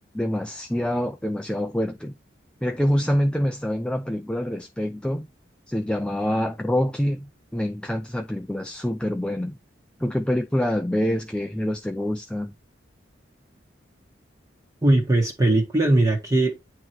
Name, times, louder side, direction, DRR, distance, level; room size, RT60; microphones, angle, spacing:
voice 1, 0.1-2.1 2.6-5.3 5.7-9.6 10.0-12.5, equal, 5° left, 0.4 m, -26 dB
voice 2, 14.8-16.6, right 2 dB, 20° right, 1.4 m, -20 dB
9.2 x 3.1 x 4.4 m
head